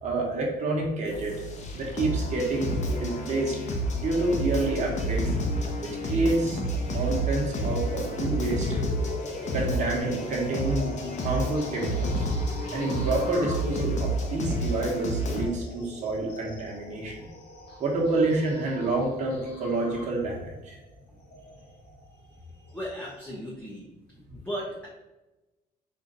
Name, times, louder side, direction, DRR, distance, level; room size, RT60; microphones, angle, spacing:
voice 1, 0.0-1.4 1.7-3.6 4.0-5.4 5.8-6.6 6.9-8.8 9.5-10.9 11.2-12.2 12.7-17.2 17.8-20.8, right 2 dB, 45° right, -2 dB, 1.3 m, -28 dB
sound 1, 1.1-15.5, equal, 45° left, 0.9 m, -30 dB
sound 2, 6.4-23.3, left 1 dB, 75° left, 1.3 m, -42 dB
voice 2, 22.5-23.8 24.2-24.9, equal, 5° left, -6 dB, 0.9 m, -37 dB
4.3 x 2.6 x 3.9 m, 1.1 s
cardioid pair, 110°, 17 cm